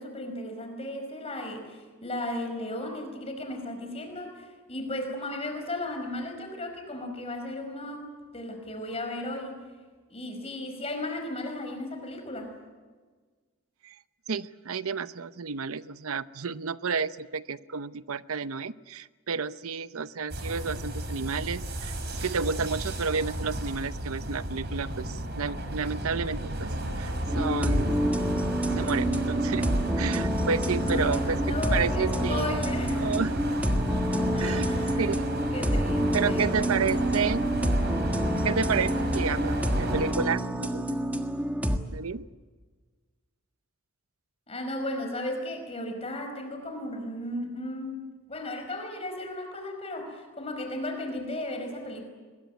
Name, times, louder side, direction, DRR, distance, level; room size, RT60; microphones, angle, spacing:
voice 1, 0.0-8.1 8.3-9.6 10.1-12.5 30.8-33.2 34.3-35.0 35.5-36.5 44.5-48.0 48.3-52.1, left 1 dB, 30° left, 5 dB, 4.9 m, -35 dB
voice 2, 14.3-26.7 27.0-28.0 28.7-29.7 30.0-31.4 31.7-32.7 33.0-33.3 34.4-34.7 35.0-35.2 36.1-37.4 38.4-41.2 41.7-42.3, right 5 dB, 80° right, 14 dB, 0.7 m, -31 dB
sound 1, 20.3-40.1, right 1 dB, 50° right, 4.7 m, -32 dB
sound 2, 27.3-41.8, equal, 5° right, 1.5 m, -28 dB
23.5 x 21.5 x 9.4 m, 1.4 s
head